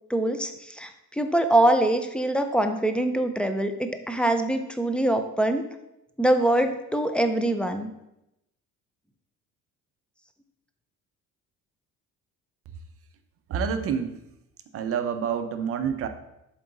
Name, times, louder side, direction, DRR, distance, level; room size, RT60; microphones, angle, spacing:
voice 1, 0.1-5.6 6.2-7.9, right 1 dB, 5° left, 7 dB, 0.4 m, -24 dB
voice 2, 13.5-14.2 14.7-16.1, right 7 dB, 50° right, 8 dB, 0.6 m, -27 dB
7.3 x 3.9 x 3.9 m, 0.87 s
cardioid pair, 125°, 30 cm